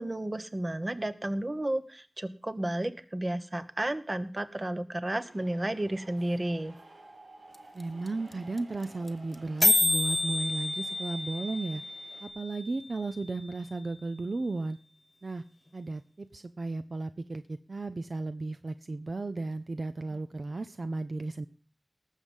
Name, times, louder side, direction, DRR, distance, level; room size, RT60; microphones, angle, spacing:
voice 1, 0.0-6.7, right 1 dB, 30° right, 12 dB, 1.0 m, -32 dB
sound 1, 5.1-12.3, right 2 dB, 90° right, 3.2 m, -54 dB
sound 2, 7.5-7.6 7.8-7.9 8.1-8.3 8.6-8.7 8.8-9.1 9.3-9.4 9.6-13.6, left 2 dB, 30° left, 1.2 m, -29 dB
voice 2, 7.7-11.8 12.2-14.8 15.2-15.4 15.7-21.5, right 3 dB, 60° right, 10 dB, 0.6 m, -35 dB
18.5 x 7.4 x 5.4 m, 0.40 s
wide cardioid pair, 70°, 0 cm